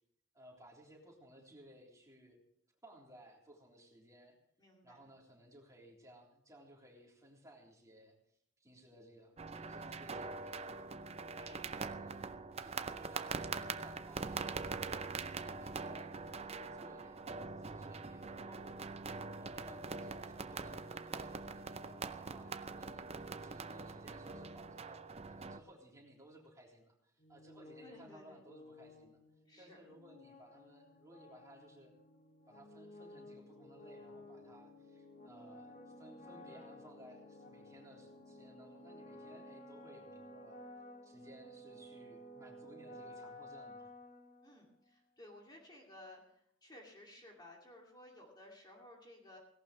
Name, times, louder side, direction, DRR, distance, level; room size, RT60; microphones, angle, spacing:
voice 1, 0.3-2.4 2.8-4.4 4.8-8.1 8.6-11.0 11.3-12.3 12.6-18.9 19.4-29.2 29.6-31.9 32.5-40.6 41.0-43.9, equal, 15° right, -1 dB, 3.6 m, -59 dB
voice 2, 4.6-5.0 11.4-11.8 23.1-23.3 27.8-28.4 29.5-29.8 44.4-49.4, left 1 dB, 20° left, -1 dB, 2.5 m, -57 dB
sound 1, 9.4-25.6, right 4 dB, 30° right, 0.6 m, -43 dB
sound 2, 27.2-44.8, left 1 dB, 40° left, 1.9 m, -54 dB
17.5 x 17.5 x 3.2 m, 0.70 s
head